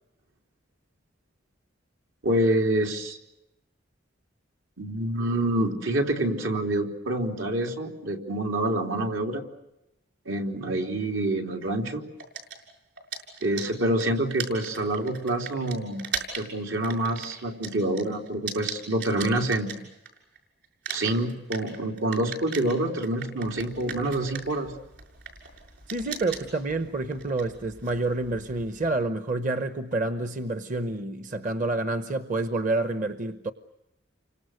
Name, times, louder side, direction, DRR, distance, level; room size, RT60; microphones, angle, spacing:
voice 1, 2.2-3.2 4.8-9.4 10.2-12.0 13.4-16.1 16.3-19.7 20.9-24.7, right 1 dB, 80° right, 3.5 m, -27 dB
sound 1, 12.2-20.4 20.6-28.9, right 6 dB, 55° right, 6.9 m, -39 dB
voice 2, 25.9-33.5, right 2 dB, 40° right, 0.9 m, -28 dB
30.0 x 25.0 x 6.5 m
head